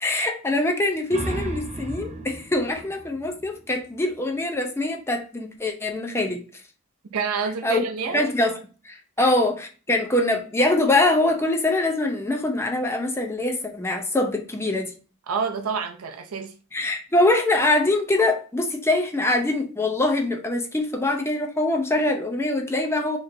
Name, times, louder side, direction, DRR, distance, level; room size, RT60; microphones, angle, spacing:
voice 1, 0.0-6.4 7.6-7.8 8.1-8.6 8.8-14.9 16.7-23.2, left 2 dB, 10° left, 0.5 m, -23 dB
sound 1, 0.8-4.3, right 1 dB, 35° right, 0.6 m, -35 dB
voice 2, 7.1-8.2 9.2-9.3 15.3-16.5, right 5 dB, 90° right, 0.5 m, -28 dB
4.3 x 3.0 x 2.5 m
head